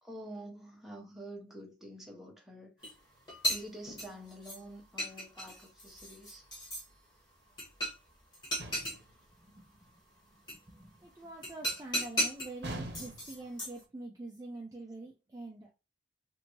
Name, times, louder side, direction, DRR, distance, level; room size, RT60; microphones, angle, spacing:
voice 1, 0.0-2.9 3.5-6.4, right 1 dB, ahead, 0.7 m, -47 dB
sound 1, 2.8-2.9 3.3-4.6 5.0-6.9 7.6-8.1 8.3-9.0 10.5-10.6 11.4-12.5 12.9-13.8, equal, 20° left, 1.2 m, -35 dB
sound 2, 8.6-9.1 12.6-13.4, right 1 dB, 55° right, 0.7 m, -42 dB
voice 2, 9.3-9.9 10.2-15.7, right 2 dB, 20° right, 0.4 m, -46 dB
2.9 x 2.6 x 2.9 m
head